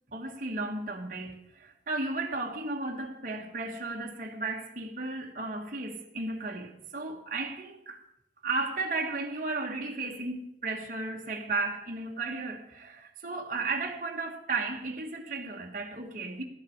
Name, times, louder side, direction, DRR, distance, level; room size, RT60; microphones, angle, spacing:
voice 1, 0.1-8.0 8.4-16.4, right 3 dB, 45° right, 1.4 m, -34 dB
12.5 x 7.5 x 8.5 m
head